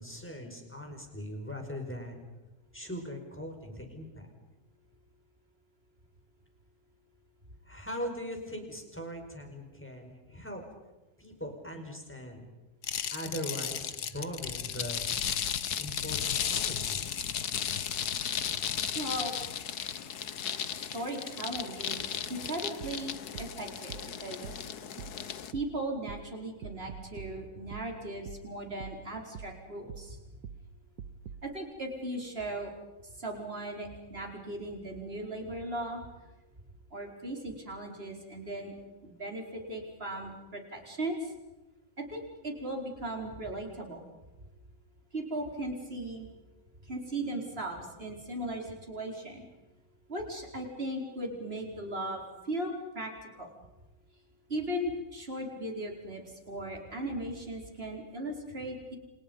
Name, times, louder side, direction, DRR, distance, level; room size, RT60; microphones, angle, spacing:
voice 1, 0.0-2.2 2.7-4.3 7.7-10.6 11.2-12.5 13.0-15.0 15.8-17.3, equal, 5° left, 3 dB, 5.4 m, -40 dB
sound 1, 12.8-25.5, left 8 dB, 70° left, 1.6 m, -35 dB
voice 2, 18.9-19.3 20.7-24.5 25.5-30.2 31.4-32.7 33.2-36.0 36.9-38.7 39.0-41.3 42.0-44.0 45.1-46.3 46.8-49.5 50.1-53.1 53.4-53.5 54.5-59.0, right 1 dB, 35° right, 2 dB, 4.9 m, -37 dB
sound 2, 22.8-31.5, right 6 dB, 80° right, 1.7 m, -47 dB
29.5 x 28.0 x 5.4 m, 1.1 s
omnidirectional pair, 1.7 m